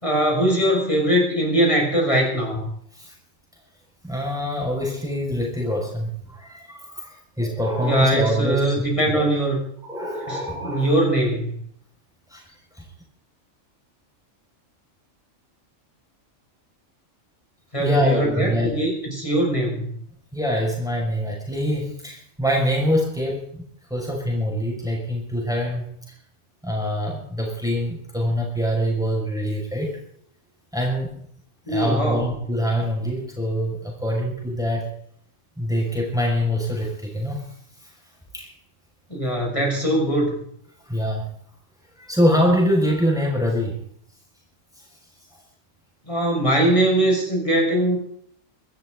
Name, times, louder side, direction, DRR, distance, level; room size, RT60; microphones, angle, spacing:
voice 1, 0.0-2.6 7.8-9.6 10.3-11.6 17.7-19.9 31.7-32.3 39.1-40.3 46.1-48.0, right 1 dB, 25° left, -1 dB, 6.2 m, -21 dB
voice 2, 4.0-8.6 9.1-9.3 9.8-10.9 12.3-12.4 17.8-18.8 20.3-23.6 23.9-25.9 26.6-30.0 30.7-31.1 31.7-34.9 35.6-37.5 38.3-38.5 40.9-41.3 42.0-43.8, equal, 5° right, -1 dB, 6.2 m, -24 dB
26.0 x 13.5 x 4.0 m, 0.63 s
omnidirectional pair, 1.4 m